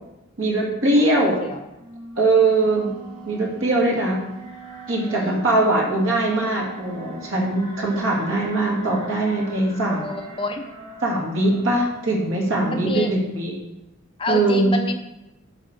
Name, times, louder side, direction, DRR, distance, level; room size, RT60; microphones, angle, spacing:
voice 1, 0.4-1.4 2.2-2.9 3.3-4.2 4.9-10.1 11.0-13.5 14.3-14.7, right 2 dB, 65° right, -1 dB, 2.0 m, -21 dB
sound 1, 1.2-13.1, right 3 dB, 35° right, 2.1 m, -41 dB
Wind instrument woodwind instrument, 2.5-7.7, right 8 dB, 85° right, 1.4 m, -43 dB
voice 2, 5.1-5.4 9.9-10.7 12.7-13.1 14.2-15.0, left 3 dB, 25° left, 5 dB, 0.5 m, -29 dB
8.2 x 3.8 x 6.4 m, 0.97 s
head